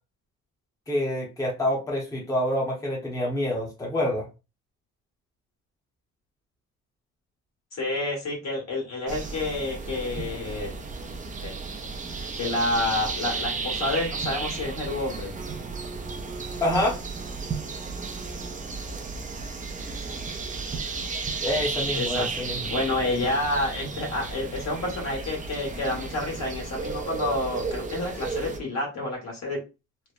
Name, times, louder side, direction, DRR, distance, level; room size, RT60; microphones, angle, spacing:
voice 1, 0.9-4.3 16.6-17.0 21.4-22.7, left 1 dB, 10° left, 0.9 m, -27 dB
voice 2, 7.7-10.7 11.4-11.5 12.4-15.3 21.9-22.3 22.7-29.6, left 2 dB, 60° left, 1.5 m, -29 dB
sound 1, 9.1-28.6, right 4 dB, 25° right, 0.4 m, -33 dB
3.0 x 2.0 x 2.4 m
cardioid pair, 90°, 30 cm